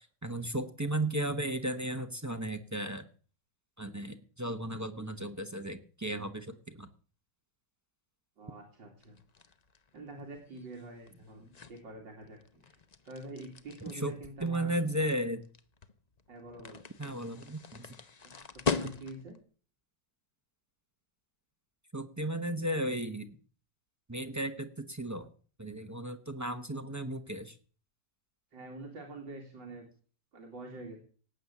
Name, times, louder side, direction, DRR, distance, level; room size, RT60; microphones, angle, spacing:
voice 1, 0.0-3.0 3.8-6.9 13.9-15.4 17.0-17.9 21.9-23.4 24.1-25.3 25.6-27.5, right 1 dB, 20° right, 7 dB, 0.5 m, -35 dB
voice 2, 8.4-9.2 9.9-12.8 13.0-14.8 16.3-16.9 18.2-19.3 28.5-29.9 30.3-31.0, right 2 dB, 75° right, 1 dB, 3.1 m, -46 dB
sound 1, 9.0-19.4, left 4 dB, 50° left, 0.4 m, -41 dB
18.0 x 8.1 x 7.2 m, 0.42 s
omnidirectional pair, 2.0 m